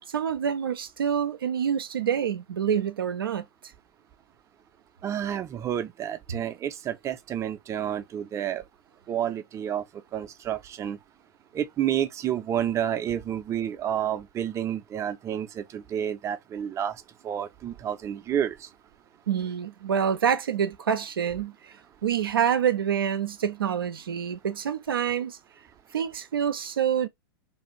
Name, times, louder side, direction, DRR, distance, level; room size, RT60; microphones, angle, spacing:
voice 1, 0.1-3.5 19.3-21.7 22.0-25.4 25.9-27.1, right 8 dB, 80° right, 0.4 m, -27 dB
voice 2, 5.0-8.6 9.1-9.8 10.1-11.0 11.5-18.7, right 10 dB, 25° right, 0.5 m, -30 dB
2.6 x 2.4 x 2.9 m
figure-of-eight pair, 95°, 12 cm